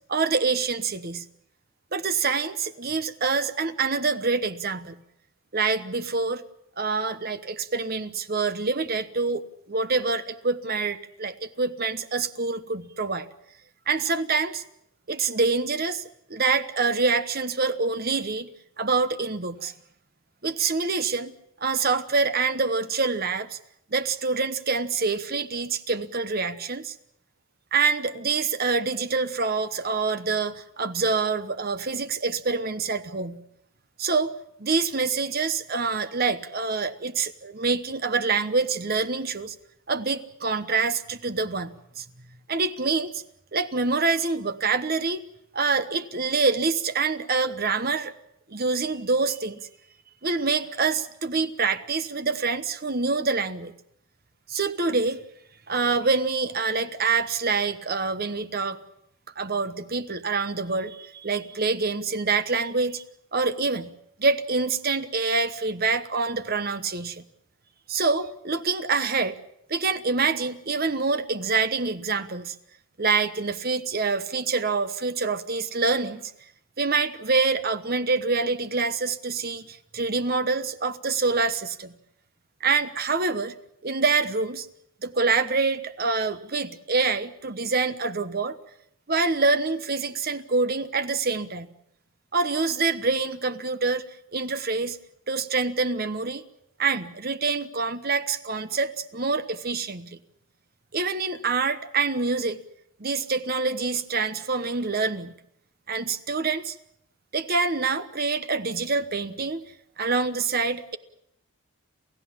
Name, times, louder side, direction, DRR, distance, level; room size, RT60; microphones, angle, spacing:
voice 1, 0.1-1.2 1.9-5.0 5.5-6.4 6.8-13.3 13.9-14.6 15.1-16.0 16.3-18.5 18.8-19.7 20.4-21.3 21.6-23.6 23.9-26.9 27.7-33.4 34.0-34.3 34.6-39.5 39.9-42.0 42.5-43.2 43.5-45.2 45.5-48.1 48.5-49.6 50.2-53.7 54.5-55.2 55.7-58.8 59.4-63.0 63.3-63.9 64.2-67.2 67.9-69.4 69.7-72.5 73.0-76.3 76.8-81.9 82.6-83.5 83.8-84.7 85.0-88.6 89.1-91.7 92.3-94.0 94.3-95.0 95.3-96.4 96.8-100.2 100.9-102.6 103.0-105.3 105.9-106.8 107.3-109.6 110.0-111.0, right 4 dB, 45° right, 11 dB, 1.1 m, -26 dB
28.5 x 15.5 x 7.3 m, 0.75 s
head